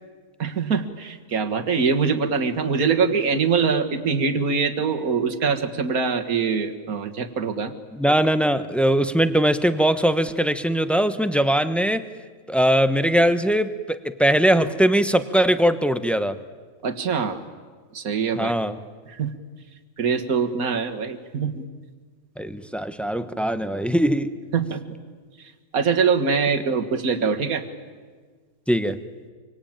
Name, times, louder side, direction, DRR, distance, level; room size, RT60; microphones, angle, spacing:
voice 1, 0.4-7.7 16.8-17.4 17.9-18.5 19.1-19.3 20.0-21.6 24.5-24.8 25.7-27.6, right 5 dB, 80° right, 6 dB, 2.1 m, -23 dB
voice 2, 7.9-12.1 12.5-16.4 18.4-18.8 22.4-24.3 28.7-29.0, right 1 dB, ahead, 11 dB, 0.8 m, -21 dB
26.0 x 24.5 x 8.9 m, 1.5 s
omnidirectional pair, 1.5 m